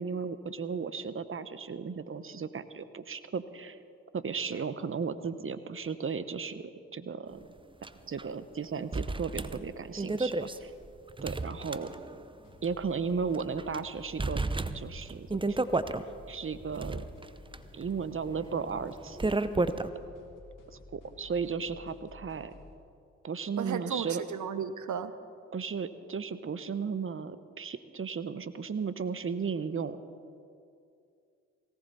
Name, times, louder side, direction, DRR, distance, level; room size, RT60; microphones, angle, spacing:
voice 1, 0.0-3.8 4.1-7.5 8.1-10.7 11.2-11.9 12.6-15.8 16.3-17.0 17.7-19.2 20.9-22.5 23.2-24.2 25.5-30.0, right 5 dB, 40° right, 13 dB, 1.0 m, -35 dB
sound 1, 7.8-7.9 8.2-8.3 8.9-12.3 12.6-12.7 13.3-13.8 14.2-16.0 16.6-19.9, right 2 dB, 15° right, 0.8 m, -32 dB
sound 2, 12.4-22.7, left 3 dB, 65° left, 2.5 m, -53 dB
voice 2, 23.6-25.1, right 7 dB, 60° right, 12 dB, 1.1 m, -34 dB
19.0 x 17.5 x 4.2 m, 2.4 s
hypercardioid pair, 45°, 34 cm